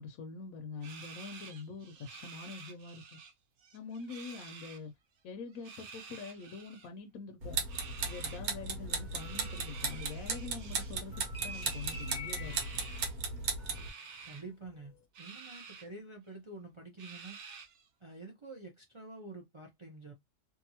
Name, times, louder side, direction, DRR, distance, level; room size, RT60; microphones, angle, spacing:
voice 1, 0.0-3.2 3.7-4.9 5.2-7.6 8.0-12.6, left 4 dB, 75° left, 1.0 m, -45 dB
sound 1, 0.8-3.3 3.6-4.8 5.5-6.9 7.7-8.4 9.2-11.0 11.5-13.2 13.7-14.4 15.1-15.9 16.3-16.4 17.0-17.9, right 5 dB, 60° right, 0.9 m, -50 dB
sound 2, 7.4-13.9, right 4 dB, 90° right, 1.3 m, -36 dB
sound 3, 8.1-10.5 10.8-14.4 14.7-15.0, left 1 dB, 45° left, 0.6 m, -49 dB
voice 2, 14.3-17.4 18.0-20.1, right 3 dB, 35° right, 0.4 m, -48 dB
2.7 x 2.6 x 2.7 m
omnidirectional pair, 1.5 m